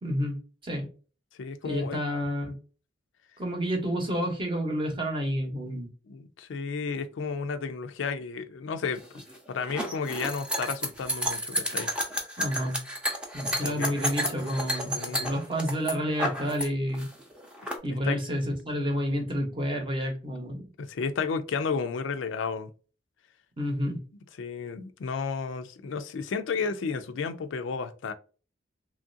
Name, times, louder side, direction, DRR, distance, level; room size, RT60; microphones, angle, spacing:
voice 1, 0.0-0.9 1.6-2.5 3.4-5.9 12.4-12.8 13.3-17.1 17.8-20.7 23.6-24.0, equal, 25° right, 0.8 m, -30 dB
voice 2, 1.4-2.0 6.1-9.2 9.5-11.9 13.6-15.3 18.0-18.2 20.8-22.7 24.4-28.1, left 5 dB, 75° left, 0.4 m, -33 dB
sound 1, 8.9-16.7 16.9-17.7, equal, 5° right, 0.6 m, -31 dB
3.1 x 2.5 x 2.6 m
head